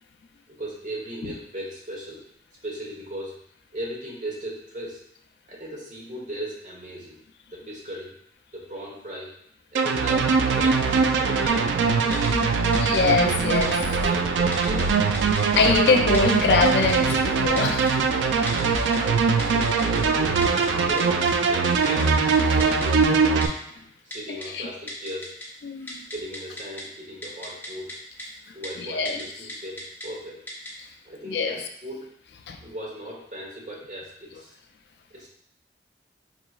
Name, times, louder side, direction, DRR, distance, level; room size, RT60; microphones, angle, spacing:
voice 1, 0.5-2.2 2.6-3.3 3.7-5.0 5.5-7.2 7.5-8.1 8.5-9.3 9.7-12.6 13.8-15.1 18.6-22.1 22.5-23.4 24.0-25.3 26.1-27.9 28.5-30.4 31.0-32.1 32.6-34.5 35.1-35.3, right 1 dB, 45° right, -4 dB, 1.1 m, -37 dB
sound 1, 9.7-23.5, right 5 dB, 85° right, 0.4 m, -22 dB
Typing, 12.1-12.3 12.7-13.0 13.6-13.7 14.5-14.8 15.1-15.6 16.1-16.3 16.7-17.1 17.6-17.9 18.5-19.0 19.4-20.0 20.4-20.7 21.0-21.1 21.3-21.4 21.6-22.0 22.3-22.4 22.6-22.9 23.4-23.5 24.1-24.5 24.9-25.5 25.8-26.8 27.2-27.9 28.2-28.3 28.6-28.7 29.1-29.2 29.5-30.1 30.5-30.7, equal, 10° left, 0.7 m, -36 dB
voice 2, 12.8-13.9 15.5-17.9 22.5-22.6 24.5-24.7 25.6-26.1 28.8-29.2 31.3-31.5 32.5-32.6, left 4 dB, 70° left, 5 dB, 0.4 m, -23 dB
4.6 x 3.1 x 2.4 m, 0.71 s
head